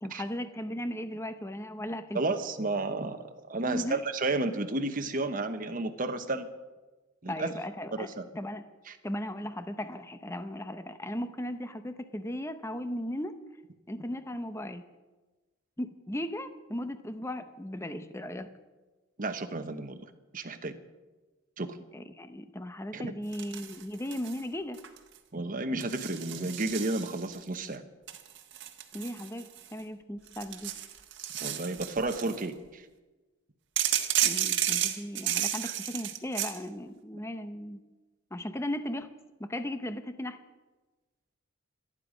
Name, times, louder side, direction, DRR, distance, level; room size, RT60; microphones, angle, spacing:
voice 1, 0.0-2.2 3.7-4.0 7.3-8.1 8.3-8.6 9.0-13.3 13.9-14.8 15.8-18.5 21.9-24.8 28.9-30.7 34.2-37.8 38.3-39.1 39.4-40.4, left 1 dB, 15° left, 10 dB, 0.7 m, -36 dB
voice 2, 2.1-3.2 3.5-6.5 7.2-7.5 7.9-8.2 8.9-9.0 19.2-20.0 20.3-20.7 21.6-21.7 22.9-23.1 25.3-27.9 31.4-32.8 35.6-35.7, right 2 dB, 40° right, 8 dB, 1.1 m, -32 dB
sound 1, 23.3-24.4 24.7-25.2 25.8-27.4 28.1-29.8 30.3-32.4 33.8-36.6, right 11 dB, 60° right, 1.4 m, -32 dB
27.0 x 9.9 x 5.1 m, 1.2 s
head